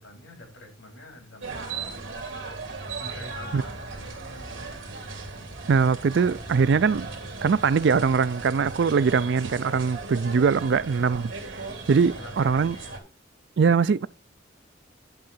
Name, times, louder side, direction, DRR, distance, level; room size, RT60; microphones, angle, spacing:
voice 1, 0.0-2.0 3.0-4.7 8.9-9.0 11.9-13.0, left 1 dB, 65° left, 3.8 m, -46 dB
sound 1, 1.4-13.0, right 3 dB, 75° right, 3.0 m, -37 dB
voice 2, 5.7-7.1 7.4-11.3 11.9-12.7 13.6-14.1, right 5 dB, 60° right, 0.4 m, -22 dB
10.5 x 3.7 x 7.2 m
head